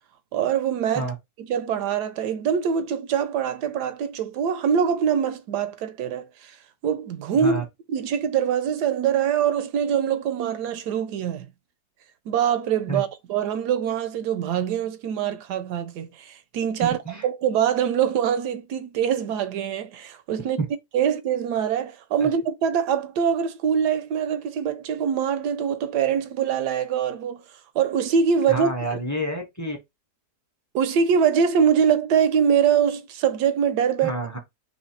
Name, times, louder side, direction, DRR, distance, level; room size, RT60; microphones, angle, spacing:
voice 1, 0.3-1.1 1.5-6.6 6.8-7.6 7.9-11.5 12.3-17.0 17.2-20.6 20.9-27.4 27.7-29.0 30.7-34.2, right 8 dB, 80° right, 1.2 m, -23 dB
voice 2, 16.8-17.3 20.6-20.7 22.2-22.3 28.5-29.8 34.0-34.4, right 2 dB, 15° left, 0.6 m, -28 dB
3.1 x 3.1 x 4.4 m
omnidirectional pair, 1.8 m